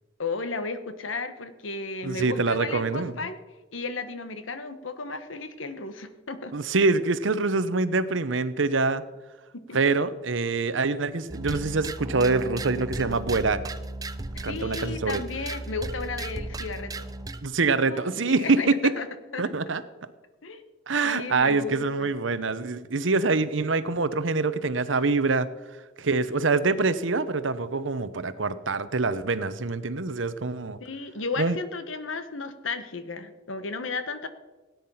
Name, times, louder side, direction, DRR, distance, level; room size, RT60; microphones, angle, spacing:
voice 1, 0.2-3.4 3.7-6.5 9.5-9.8 14.5-17.1 17.7-19.4 20.4-20.7 21.0-22.2 30.8-34.3, left 3 dB, 90° left, 11 dB, 1.2 m, -34 dB
voice 2, 2.0-3.1 6.5-9.0 9.7-13.6 14.4-15.2 17.4-18.7 19.4-19.8 20.9-25.5 26.0-30.8 31.4-31.6, right 3 dB, 70° right, 14 dB, 0.9 m, -25 dB
sound 1, 11.3-17.4, right 2 dB, 20° right, 0.6 m, -35 dB
17.5 x 9.5 x 5.7 m, 1.2 s
head